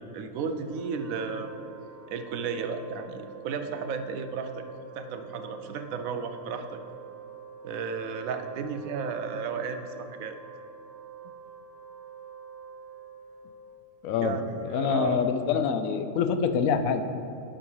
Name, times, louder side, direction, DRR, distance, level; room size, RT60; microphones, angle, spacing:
voice 1, 0.0-1.5 2.1-4.7 4.9-6.8 7.6-10.4 14.2-14.4 14.7-15.2, right 5 dB, 85° right, 8 dB, 1.0 m, -33 dB
Wind instrument woodwind instrument, 0.6-14.0, right 5 dB, 60° right, 0.4 m, -46 dB
voice 2, 14.0-14.4 14.7-17.0, left 6 dB, 80° left, 9 dB, 1.0 m, -26 dB
11.0 x 3.8 x 5.5 m, 2.7 s
omnidirectional pair, 1.4 m